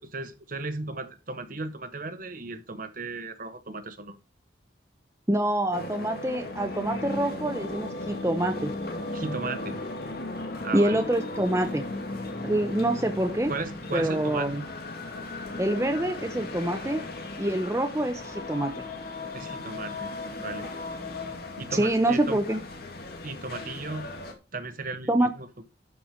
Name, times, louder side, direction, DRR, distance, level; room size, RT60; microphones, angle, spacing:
voice 1, 0.0-4.2 9.1-9.8 10.6-11.0 13.5-14.6 19.3-20.1 20.4-20.7 21.6-22.4 23.2-24.1 24.5-25.5, right 3 dB, 45° right, 1.2 m, -35 dB
voice 2, 5.3-8.7 10.7-11.8 12.4-13.5 13.9-14.6 15.6-17.0 17.4-18.8 21.7-22.6 25.1-25.3, right 1 dB, 15° right, 0.8 m, -26 dB
sound 1, 5.7-24.3, left 2 dB, 55° left, 2.2 m, -36 dB
12.0 x 4.8 x 5.1 m
head